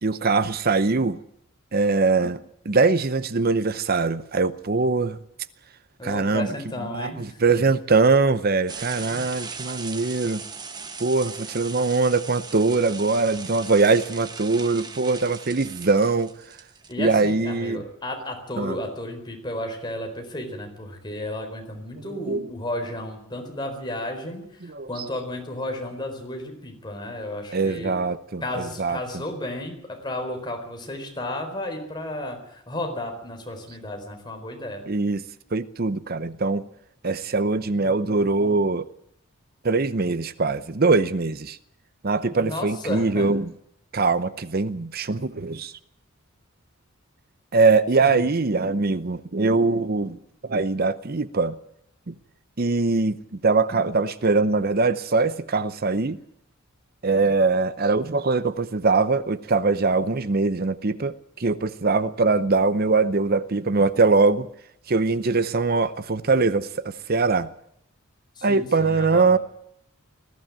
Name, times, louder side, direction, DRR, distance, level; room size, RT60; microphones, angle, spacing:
voice 1, 0.0-1.2 1.7-2.4 2.7-5.2 6.0-6.5 6.9-10.4 11.0-16.3 17.0-17.8 18.6-18.8 22.1-22.5 24.6-24.9 27.5-29.0 34.9-35.2 35.5-36.6 37.0-38.8 39.6-41.6 42.0-43.5 43.9-45.7 47.5-50.2 50.4-51.6 52.1-52.2 52.6-53.2 53.4-56.2 57.0-64.5 64.9-67.5 68.4-69.4, right 3 dB, 45° right, 0.7 m, -22 dB
voice 2, 6.0-7.6 9.0-9.3 16.9-28.0 28.4-34.8 42.3-43.3 48.0-48.2 68.4-69.4, left 1 dB, 20° left, 4.3 m, -33 dB
sound 1, 8.7-16.9, right 5 dB, 20° right, 1.1 m, -39 dB
20.0 x 14.5 x 8.9 m
head